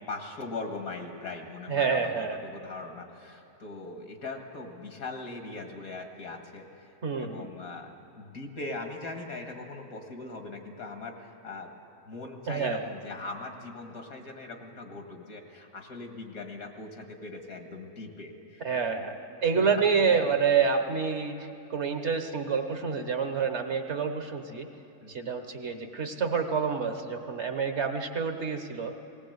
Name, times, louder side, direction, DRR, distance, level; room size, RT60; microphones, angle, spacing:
voice 1, 0.1-2.1 2.4-11.7 12.1-18.7 19.5-19.7 20.1-20.3 25.0-25.3, left 3 dB, 75° left, 4 dB, 2.2 m, -40 dB
voice 2, 1.7-2.4 7.0-7.5 12.5-12.8 18.6-24.7 25.1-28.9, right 6 dB, 55° right, 7 dB, 1.3 m, -28 dB
18.5 x 18.5 x 8.0 m, 2.7 s
omnidirectional pair, 1.5 m